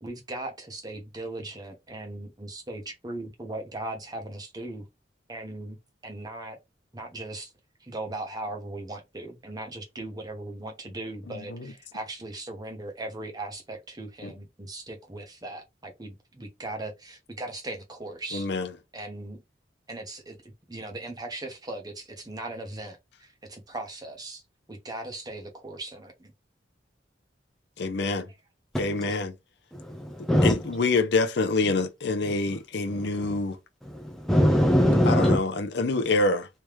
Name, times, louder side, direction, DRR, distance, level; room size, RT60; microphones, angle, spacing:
voice 1, 0.0-4.9 5.3-5.8 6.0-6.6 6.9-7.5 7.8-18.5 18.9-19.4 19.9-24.4 24.7-26.3, right 2 dB, 20° right, 1.0 m, -38 dB
voice 2, 18.3-18.7 27.8-28.3 28.8-29.3 30.4-33.6 35.0-36.5, left 3 dB, 65° left, 0.6 m, -26 dB
voice 3, 28.7-29.2 29.7-30.5 32.9-33.1 33.9-35.4, equal, ahead, 0.4 m, -22 dB
3.4 x 3.1 x 3.1 m
head